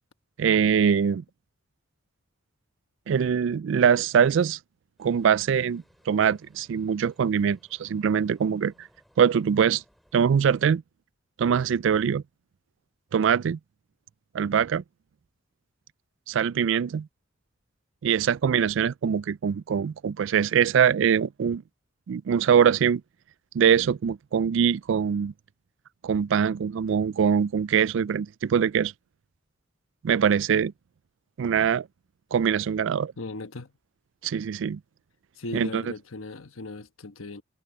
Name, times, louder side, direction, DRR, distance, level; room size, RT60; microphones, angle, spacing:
voice 1, 0.4-1.2 3.1-4.6 5.0-8.9 9.2-9.8 10.1-10.8 11.4-12.2 13.1-13.6 14.3-14.8 16.3-17.1 18.0-21.6 22.1-23.0 23.5-25.3 26.0-28.9 30.0-30.7 31.4-31.9 32.3-33.1 34.2-34.8 35.5-35.8, right 7 dB, 60° right, 0.3 m, -23 dB
sound 1, 5.0-10.7, equal, ahead, 4.5 m, -63 dB
voice 2, 33.2-33.7 35.4-37.4, left 2 dB, 85° left, 1.2 m, -38 dB
head